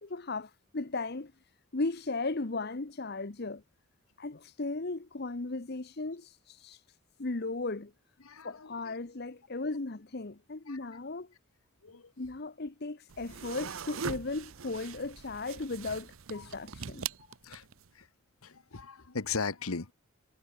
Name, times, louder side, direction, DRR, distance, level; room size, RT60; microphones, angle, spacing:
voice 1, 0.0-1.3 1.7-3.6 4.2-7.9 8.4-11.3 12.2-17.0, left 3 dB, 50° left, 0.9 m, -36 dB
voice 2, 8.2-8.9 10.7-10.8 11.8-12.1 16.3-16.4 17.4-17.6 17.9-18.1 18.4-19.9, left 4 dB, 90° left, 1.3 m, -38 dB
sound 1, 13.1-17.9, right 6 dB, 75° right, 0.8 m, -41 dB
head